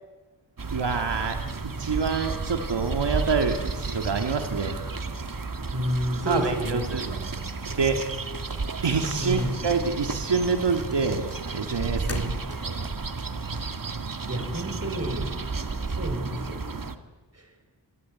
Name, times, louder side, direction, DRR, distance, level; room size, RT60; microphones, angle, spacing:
sound 1, 0.6-17.0, right 4 dB, 50° right, 1.8 m, -32 dB
voice 1, 0.7-1.4 1.6-4.8 6.3-7.2 7.8-8.0 8.8-11.2 11.5-12.2 12.6-12.9, right 5 dB, 85° right, 5 dB, 2.1 m, -27 dB
voice 2, 5.7-6.8 9.2-9.6 12.0-12.4 14.3-15.3 16.0-16.6 17.3-17.5, right 1 dB, 35° right, 6 dB, 6.4 m, -29 dB
sound 2, 7.7-9.0 9.3-9.8 10.1-12.9, left 2 dB, 35° left, 3.3 m, -40 dB
27.5 x 21.5 x 9.9 m, 1.3 s
wide cardioid pair, 70°, 41 cm